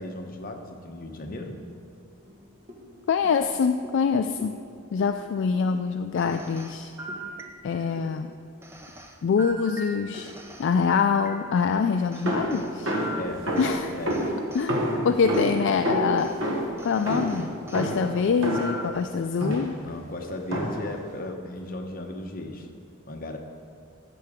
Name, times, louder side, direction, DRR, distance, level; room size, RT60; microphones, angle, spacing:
voice 1, 0.0-1.6 13.2-13.5 13.9-14.2 15.2-15.4 19.8-22.7 23.1-23.4, left 2 dB, 45° left, 3 dB, 0.9 m, -36 dB
sound 1, 2.2-8.6 9.3-13.2 13.5-13.6 14.0-17.6, left 1 dB, 35° right, 1.2 m, -48 dB
voice 2, 3.1-4.6 4.9-6.9 7.6-8.3 9.2-10.3 10.6-12.9 13.6-13.9 14.5-14.8 15.0-16.3 16.8-19.8, left 5 dB, 60° left, 7 dB, 0.3 m, -25 dB
sound 2, 6.2-7.9 8.6-11.8 12.1-14.7 15.3-15.5 16.2-16.4 16.8-17.9 18.4-19.1, equal, 10° right, 0.5 m, -41 dB
sound 3, 12.3-18.9 19.4-19.9 20.5-21.0, right 1 dB, 65° right, 1.3 m, -29 dB
13.5 x 7.6 x 3.6 m, 2.3 s
head